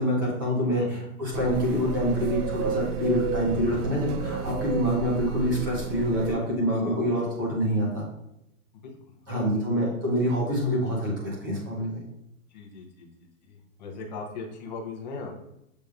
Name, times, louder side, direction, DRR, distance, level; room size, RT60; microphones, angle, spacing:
voice 1, 0.0-8.1 9.3-11.1 11.4-12.0, equal, 15° right, -4 dB, 0.5 m, -26 dB
sound 1, 1.3-6.3, right 6 dB, 80° right, 0.6 m, -32 dB
voice 2, 6.7-7.1 8.8-9.0 9.3-9.6 12.5-13.1 13.4-15.3, left 4 dB, 30° left, 1 dB, 0.7 m, -39 dB
6.6 x 3.1 x 2.3 m, 0.82 s
hypercardioid pair, 165°, 45 cm